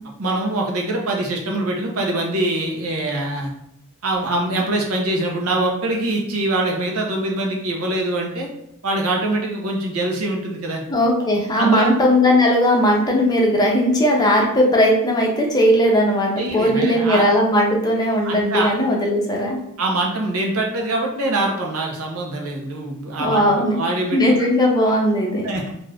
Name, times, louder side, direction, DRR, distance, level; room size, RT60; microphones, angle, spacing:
voice 1, 0.2-3.5 4.0-8.5 8.8-10.8 11.6-11.9 16.4-17.3 18.2-18.7 19.8-24.2 25.4-25.7, right 2 dB, 80° right, 0 dB, 0.7 m, -23 dB
voice 2, 10.9-19.6 23.2-23.8 24.1-25.5, equal, 20° left, -1 dB, 0.5 m, -18 dB
2.5 x 2.4 x 3.3 m, 0.77 s
head